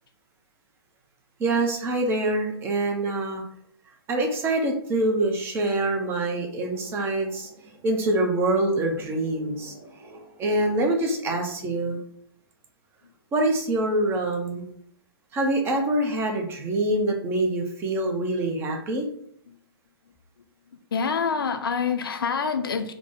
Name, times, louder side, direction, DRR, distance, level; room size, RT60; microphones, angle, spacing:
voice 1, 1.4-3.4 4.1-7.5 7.8-12.0 13.3-14.7 15.3-19.1, right 2 dB, 15° right, 0.6 m, -25 dB
voice 2, 20.9-22.9, left 6 dB, 60° left, 0.4 m, -26 dB
3.5 x 2.1 x 3.7 m
figure-of-eight pair, 115°, 13 cm